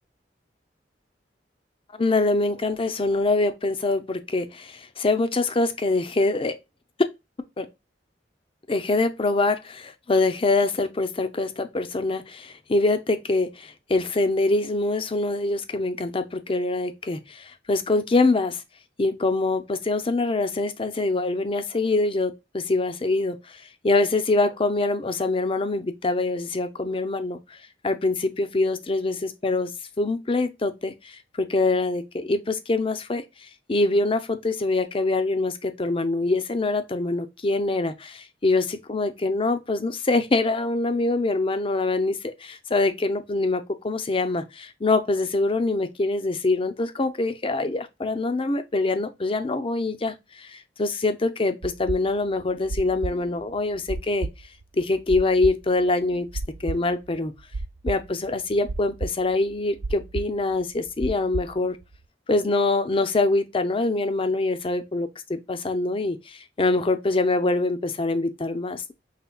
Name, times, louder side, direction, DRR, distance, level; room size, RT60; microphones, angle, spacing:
voice 1, 1.9-6.6 7.6-7.7 8.7-18.6 19.0-27.6 27.8-29.7 30.0-54.3 54.7-56.3 56.6-57.3 57.8-61.8 62.3-68.9, left 2 dB, 30° left, 0.6 m, -24 dB
sound 1, 51.6-62.0, right 3 dB, 50° right, 0.4 m, -32 dB
5.7 x 3.3 x 2.2 m
head